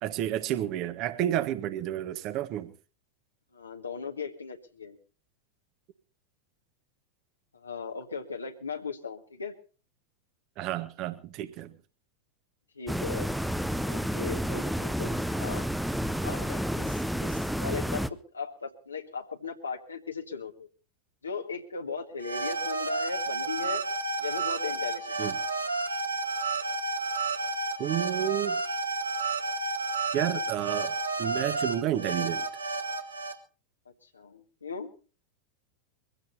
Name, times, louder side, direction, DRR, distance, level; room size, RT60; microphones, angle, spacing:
voice 1, 0.0-2.7 10.6-11.7 25.2-25.3 27.8-28.6 30.1-32.4, right 12 dB, 40° right, 1.5 m, -31 dB
voice 2, 3.5-5.0 7.5-9.5 12.8-13.3 13.9-15.1 15.4-15.7 16.2-18.1 18.3-20.7 21.2-23.8 24.2-25.2 34.1-35.0, left 5 dB, 75° left, 1.8 m, -37 dB
sound 1, 12.9-18.1, equal, ahead, 0.7 m, -30 dB
sound 2, 22.2-33.3, right 3 dB, 80° right, 1.6 m, -31 dB
23.5 x 16.0 x 2.8 m
figure-of-eight pair, 90°, 0 cm